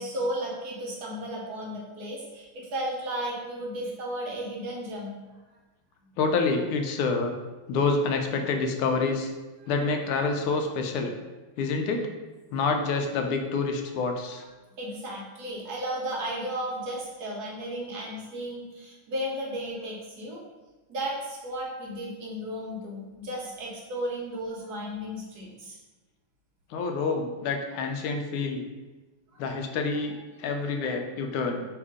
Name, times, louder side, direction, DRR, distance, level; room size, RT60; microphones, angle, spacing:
voice 1, 0.0-5.1 9.6-9.7 14.4-14.5 14.8-20.4 20.9-25.8 29.3-29.5 29.9-30.0, right 1 dB, 65° right, -3 dB, 1.0 m, -34 dB
voice 2, 6.2-7.3 7.7-9.3 9.7-11.1 11.6-12.1 12.5-14.4 26.7-28.6 29.4-31.6, left 4 dB, 80° left, 4 dB, 1.5 m, -27 dB
3.7 x 2.8 x 4.8 m, 1.2 s
omnidirectional pair, 2.4 m